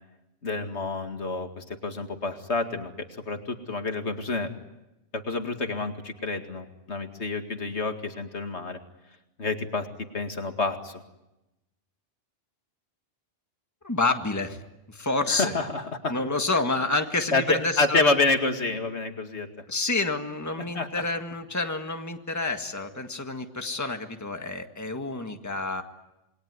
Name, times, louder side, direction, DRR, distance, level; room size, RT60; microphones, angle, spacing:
voice 1, 0.4-2.9 3.3-4.5 5.1-8.8 9.4-9.9 10.1-11.0 15.3-16.1 17.3-19.5 20.7-20.9, left 3 dB, 65° left, 6 dB, 2.5 m, -28 dB
voice 2, 13.8-14.6 14.9-15.5 16.1-18.1 19.7-25.8, left 3 dB, 15° left, 5 dB, 1.8 m, -28 dB
28.0 x 22.0 x 9.6 m, 0.95 s
omnidirectional pair, 1.2 m